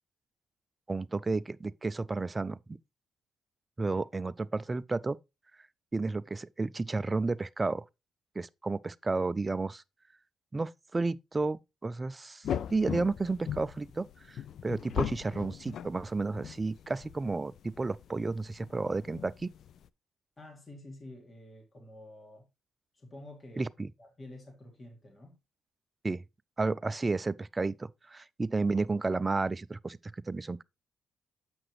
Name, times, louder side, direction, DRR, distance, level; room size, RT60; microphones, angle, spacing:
voice 1, 0.9-2.8 3.8-5.2 5.9-7.8 8.4-9.8 10.5-19.5 23.6-23.9 26.0-26.2 26.6-30.6, right 3 dB, 25° right, 0.4 m, -32 dB
sound 1, 12.4-19.9, left 9 dB, 65° left, 0.3 m, -39 dB
voice 2, 20.4-22.5 22.9-23.7 24.0-25.4, left 1 dB, 30° left, 2.0 m, -49 dB
7.8 x 5.9 x 3.1 m
cardioid pair, 90°, 0 cm